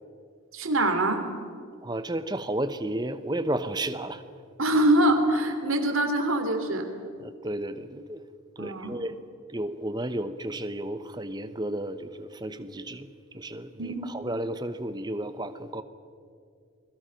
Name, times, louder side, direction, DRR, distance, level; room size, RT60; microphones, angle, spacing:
voice 1, 0.5-1.3 4.6-6.9 8.6-8.9 13.8-14.1, right 1 dB, 70° right, 6 dB, 2.9 m, -24 dB
voice 2, 1.8-4.2 7.2-8.2 8.6-9.2 9.5-13.1 13.3-15.8, right 1 dB, 20° right, 11 dB, 0.9 m, -32 dB
29.0 x 22.0 x 5.9 m, 2.3 s
head